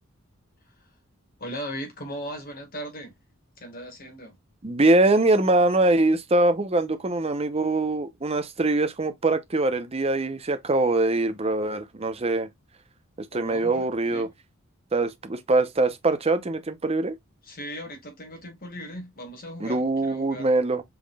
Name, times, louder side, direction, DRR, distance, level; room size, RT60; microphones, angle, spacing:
voice 1, 1.4-3.1 3.6-4.4 13.3-14.3 17.4-20.5, equal, 45° left, 1.7 m, -38 dB
voice 2, 4.6-12.5 13.3-14.3 14.9-17.1 19.6-20.8, right 2 dB, 30° right, 0.7 m, -23 dB
5.3 x 3.6 x 2.3 m
head